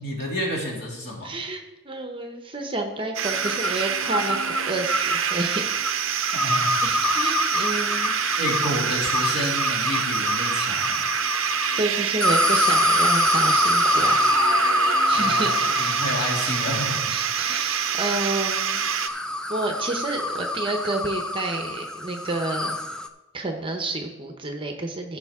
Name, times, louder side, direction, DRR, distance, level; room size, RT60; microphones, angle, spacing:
voice 1, 0.0-1.3 6.3-6.7 7.0-7.3 8.4-11.0 15.1-17.0, equal, 50° left, -2 dB, 2.6 m, -30 dB
voice 2, 1.2-6.0 6.4-8.2 9.2-9.5 11.8-14.6 15.1-16.1 17.1-19.1 19.5-22.8 23.3-25.2, right 2 dB, 25° right, 4 dB, 0.8 m, -30 dB
sound 1, 3.1-19.1, right 9 dB, 65° right, 0.6 m, -27 dB
sound 2, 3.2-11.8 12.2-23.1, left 1 dB, 5° left, 0.4 m, -26 dB
14.5 x 6.2 x 3.6 m, 1.1 s
head